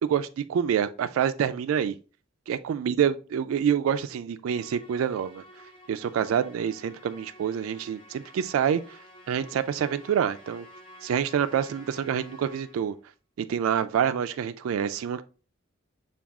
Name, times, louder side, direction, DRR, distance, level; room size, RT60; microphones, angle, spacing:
voice 1, 0.0-2.0 2.5-5.4 5.9-9.0 9.3-10.7 11.0-13.0 13.5-15.2, right 8 dB, 85° right, 0.3 m, -27 dB
Musical instrument, 4.5-13.0, equal, 30° left, 0.7 m, -51 dB
5.8 x 2.3 x 3.5 m
head